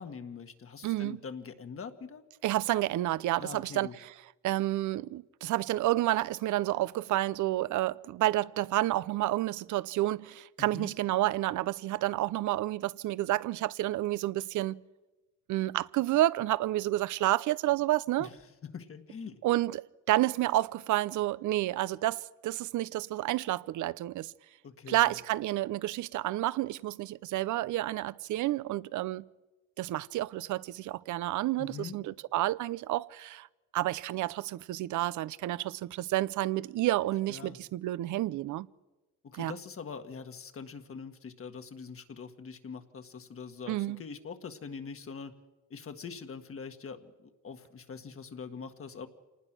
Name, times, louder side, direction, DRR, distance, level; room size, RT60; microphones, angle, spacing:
voice 1, 0.0-2.2 3.4-3.9 10.6-10.9 18.2-18.4 18.6-19.4 24.6-25.2 31.6-32.0 37.3-37.6 39.2-45.3 45.7-49.1, left 5 dB, 45° left, 1.8 m, -43 dB
voice 2, 0.8-1.2 2.4-4.1 4.4-14.8 15.5-18.3 19.4-24.3 24.9-29.3 29.8-33.5 33.7-38.7 39.3-39.5 43.7-44.0, right 15 dB, 80° right, 0.7 m, -30 dB
26.5 x 19.5 x 6.1 m
cardioid pair, 90°, 30 cm